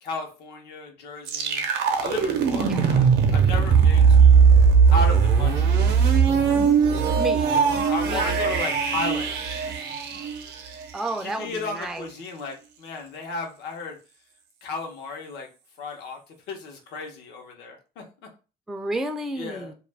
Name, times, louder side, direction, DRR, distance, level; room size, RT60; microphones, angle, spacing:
voice 1, 0.0-1.7 2.0-4.5 4.9-5.8 7.9-9.7 11.2-14.0 14.6-15.5 15.8-18.0 19.3-19.7, left 3 dB, 85° left, 2 dB, 0.8 m, -34 dB
sound 1, 1.3-11.1, right 6 dB, 70° right, 0.6 m, -19 dB
voice 2, 7.2-7.7 8.1-8.7 10.9-12.1 18.7-19.7, right 2 dB, ahead, 4 dB, 0.3 m, -32 dB
2.3 x 2.1 x 3.3 m, 0.33 s
cardioid pair, 110°, 17 cm